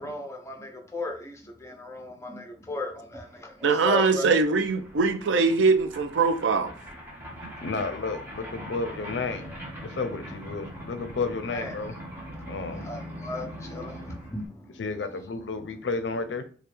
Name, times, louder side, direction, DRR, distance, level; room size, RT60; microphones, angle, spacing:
voice 1, 0.0-4.4 7.5-7.6 11.5-11.8 12.3-14.8, left 2 dB, 15° left, 0.7 m, -36 dB
sound 1, 3.3-3.4 3.6-14.5, equal, 10° right, 1.0 m, -42 dB
voice 2, 3.6-6.7 7.4-7.5, right 4 dB, 85° right, 0.5 m, -22 dB
voice 3, 7.6-9.5 9.8-11.9 12.5-12.8 14.8-16.4, left 4 dB, 70° left, 0.5 m, -32 dB
3.3 x 2.4 x 4.4 m
head